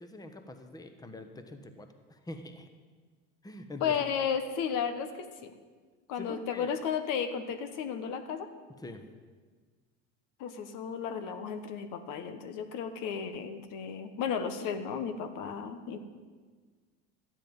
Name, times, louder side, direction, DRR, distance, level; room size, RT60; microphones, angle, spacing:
voice 1, 0.0-2.7 3.4-4.0 6.2-6.7 8.8-9.0, left 1 dB, 10° left, 7 dB, 1.1 m, -45 dB
voice 2, 3.8-5.5 6.1-8.5 10.4-16.0, left 7 dB, 65° left, 9 dB, 1.1 m, -34 dB
13.0 x 10.0 x 5.4 m, 1.5 s
supercardioid pair, 95°, 34 cm